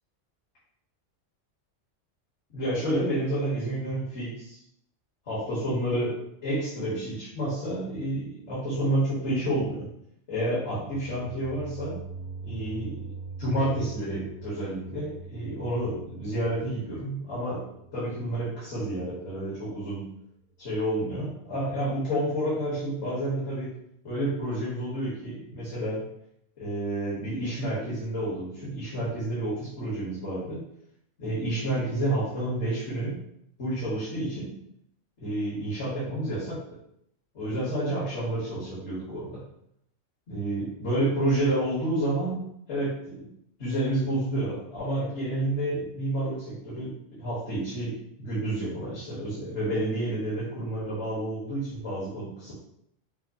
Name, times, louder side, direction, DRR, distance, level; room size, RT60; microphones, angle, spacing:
voice 1, 2.5-4.6 5.3-9.9 10.3-12.0 12.4-13.0 13.4-17.7 17.9-20.1 20.6-23.7 24.0-26.0 26.6-30.6 31.2-33.2 33.6-34.6 35.2-36.8 37.3-39.4 40.3-42.4 42.7-43.2 43.6-52.5, right 1 dB, 65° left, -9 dB, 1.7 m, -30 dB
sound 1, 10.7-19.6, right 4 dB, 85° left, 1.1 m, -43 dB
5.7 x 2.1 x 2.6 m, 0.74 s
omnidirectional pair, 1.3 m